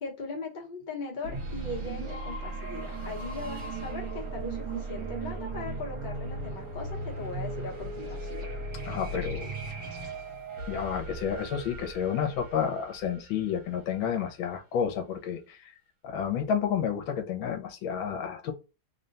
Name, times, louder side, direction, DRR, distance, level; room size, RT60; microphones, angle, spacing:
voice 1, 0.0-8.5, left 3 dB, 35° left, 0.9 m, -39 dB
sound 1, 1.2-13.9, right 3 dB, 60° right, 1.7 m, -37 dB
voice 2, 8.8-9.5 10.7-15.7 16.0-18.5, left 8 dB, 80° left, 1.4 m, -30 dB
3.6 x 2.2 x 3.8 m
omnidirectional pair, 2.2 m